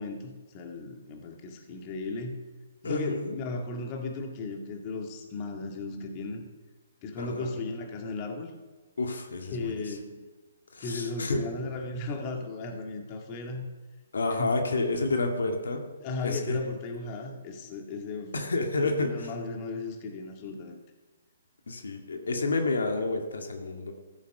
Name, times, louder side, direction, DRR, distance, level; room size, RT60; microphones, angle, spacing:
voice 1, 0.0-2.4 2.8-6.4 7.0-8.5 9.5-10.2 10.8-13.7 14.4-14.5 16.0-18.4 18.8-20.8, left 3 dB, 30° left, 3 dB, 1.9 m, -35 dB
voice 2, 2.8-3.4 7.2-7.5 9.0-10.0 10.7-11.5 14.1-15.9 16.2-16.6 18.3-19.3 21.7-23.9, left 3 dB, 80° left, 4 dB, 2.0 m, -30 dB
14.5 x 8.6 x 6.6 m, 1.2 s
hypercardioid pair, 145°, 0 cm